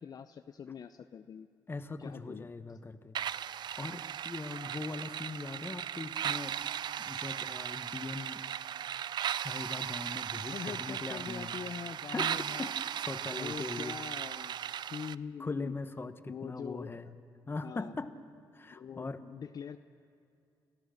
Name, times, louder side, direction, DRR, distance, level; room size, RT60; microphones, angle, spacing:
voice 1, 0.0-1.5 2.0-2.5 10.5-12.7 13.3-14.6 14.9-15.7 16.3-17.0 17.6-17.9 18.7-19.8, left 7 dB, 50° left, 9 dB, 0.6 m, -43 dB
voice 2, 1.7-3.2 3.8-6.6 7.0-8.4 9.3-11.6 12.1-12.7 13.0-14.0 15.4-17.1 17.5-18.1 18.5-19.2, left 3 dB, 25° left, 10 dB, 1.2 m, -40 dB
sound 1, 3.1-15.1, right 9 dB, 60° right, 0.4 m, -37 dB
29.5 x 14.0 x 6.4 m, 2.4 s
cardioid pair, 70°, 8 cm